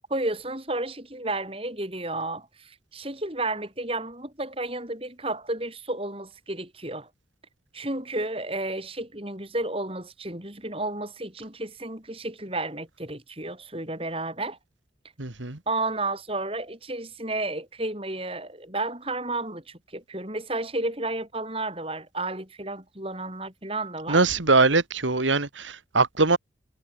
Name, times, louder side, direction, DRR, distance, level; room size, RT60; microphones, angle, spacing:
voice 1, 0.1-7.1 7.7-14.6 15.7-24.2, right 2 dB, 30° right, 7.6 m, -32 dB
voice 2, 15.2-15.6 24.1-26.4, right 3 dB, 85° right, 2.2 m, -22 dB
head